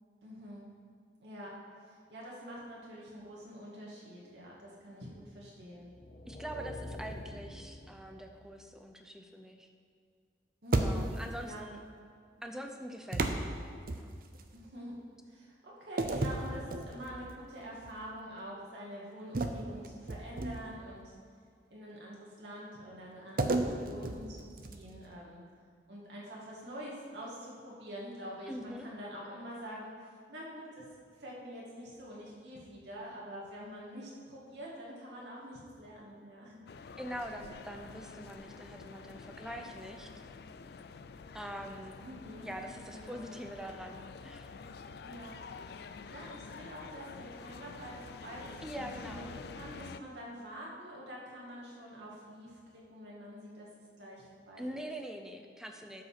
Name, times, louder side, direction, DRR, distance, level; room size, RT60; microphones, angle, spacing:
voice 1, 0.2-0.6 1.2-1.5 1.9-5.9 10.6-11.1 11.4-11.6 14.5-15.0 15.3-21.1 21.7-25.4 25.9-29.9 30.3-30.8 31.2-36.6 42.0-42.5 42.9-43.3 45.0-45.4 45.7-45.8 46.1-48.5 48.8-49.2 49.5-53.7 54.0-54.9, equal, 75° right, -5 dB, 2.2 m, -46 dB
sound 1, 5.7-8.7, left 1 dB, 45° left, 0.9 m, -46 dB
voice 2, 6.3-9.7 10.8-11.8 12.4-13.6 14.0-14.1 28.5-28.9 37.0-40.1 41.3-42.0 42.4-44.5 48.6-49.3 54.6-56.0, equal, 5° right, 4 dB, 0.7 m, -44 dB
sound 2, 10.7-11.4 13.1-14.5 16.0-17.3 17.8-18.0 19.3-20.9 23.4-25.0, right 2 dB, 55° right, 0.7 m, -33 dB
sound 3, 36.7-50.0, left 5 dB, 60° left, 0.4 m, -48 dB
12.5 x 5.4 x 5.9 m, 2.2 s
head